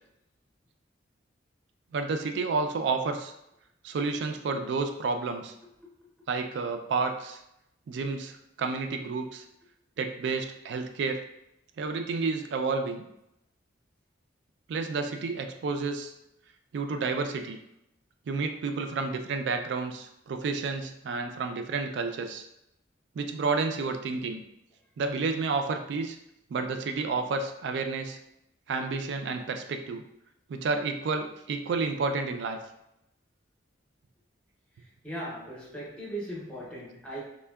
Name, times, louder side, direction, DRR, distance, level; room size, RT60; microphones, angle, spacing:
voice 1, 1.9-3.3 3.8-5.5 6.3-7.4 7.9-9.4 10.0-11.2 11.8-13.0 14.7-16.1 16.7-17.6 18.3-22.4 23.2-24.4 25.0-26.2 26.5-28.2 28.7-30.0 30.5-32.6, right 4 dB, 65° right, 6 dB, 0.3 m, -30 dB
voice 2, 5.8-6.3 34.8-37.2, right 1 dB, 5° left, -5 dB, 0.6 m, -39 dB
3.4 x 2.1 x 2.2 m, 0.82 s
head